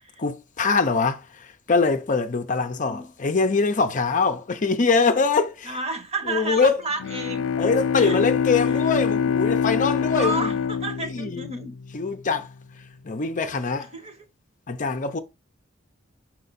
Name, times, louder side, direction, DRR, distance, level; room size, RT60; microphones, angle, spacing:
voice 1, 0.2-5.8 6.3-6.8 7.6-10.5 11.0-11.5 11.9-12.5 13.0-13.9 14.7-15.2, left 4 dB, 40° left, 0.6 m, -23 dB
voice 2, 2.5-3.1 5.6-7.5 7.9-8.2 8.6-8.8 10.1-11.7 13.6-14.2, right 2 dB, 30° right, 1.1 m, -32 dB
Bowed string instrument, 7.0-12.2, left 7 dB, 80° left, 0.3 m, -25 dB
5.6 x 4.4 x 4.1 m
head